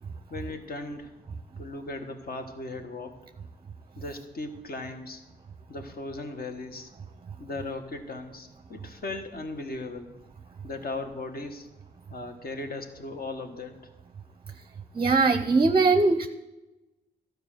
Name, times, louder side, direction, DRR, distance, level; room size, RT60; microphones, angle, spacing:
voice 1, 0.3-1.1 1.6-3.3 4.0-5.2 5.7-6.9 7.4-10.1 10.6-11.7 12.1-13.9, left 2 dB, 50° left, 6 dB, 1.4 m, -37 dB
voice 2, 14.9-16.3, right 3 dB, 25° right, 10 dB, 0.6 m, -21 dB
12.0 x 4.8 x 6.4 m, 1.0 s
supercardioid pair, 45°, 19 cm